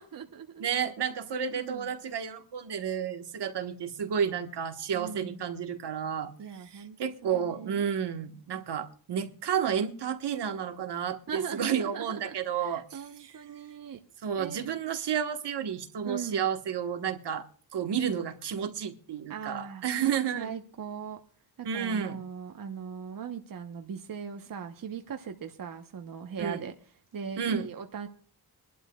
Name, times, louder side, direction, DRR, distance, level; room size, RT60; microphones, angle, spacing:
voice 1, 0.0-0.7 1.5-1.9 4.9-5.4 6.4-7.0 7.2-7.8 11.3-14.0 14.4-14.6 16.0-16.4 19.3-19.9 20.3-21.2 21.6-26.7 27.1-28.1, right 7 dB, 55° right, 1.1 m, -39 dB
voice 2, 0.6-13.3 14.2-17.5 17.7-20.5 21.6-22.2 26.4-26.6 27.4-27.7, right 8 dB, 75° right, 1.5 m, -31 dB
23.5 x 12.0 x 2.4 m
wide cardioid pair, 115°, 41 cm